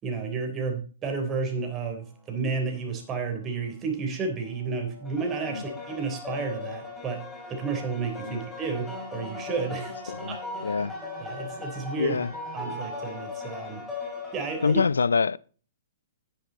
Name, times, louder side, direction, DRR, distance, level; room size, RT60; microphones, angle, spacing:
voice 1, 0.0-7.2 7.5-10.4 10.6-10.8 11.2-12.2 12.5-13.8 14.3-14.8, right 4 dB, 25° right, 3.7 m, -32 dB
sound 1, 4.5-14.7, left 3 dB, 10° left, 4.9 m, -38 dB
voice 2, 12.0-12.3 14.6-15.4, left 5 dB, 85° left, 0.4 m, -25 dB
10.5 x 9.9 x 4.1 m
hypercardioid pair, 130°, 0 cm